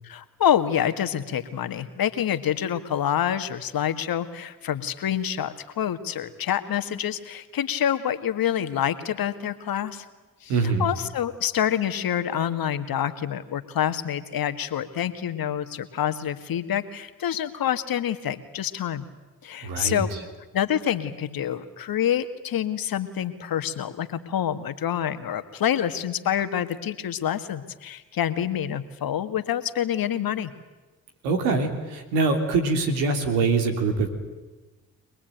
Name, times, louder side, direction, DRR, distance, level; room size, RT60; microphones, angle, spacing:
voice 1, 0.0-10.1 10.4-10.5 10.8-19.0 19.4-20.1 20.5-30.5, left 10 dB, 65° left, 10 dB, 1.7 m, -27 dB
voice 2, 10.5-10.9 19.6-20.2 31.2-34.1, right 4 dB, 85° right, 5 dB, 3.1 m, -24 dB
25.5 x 19.0 x 9.2 m, 1.2 s
supercardioid pair, 50°, 39 cm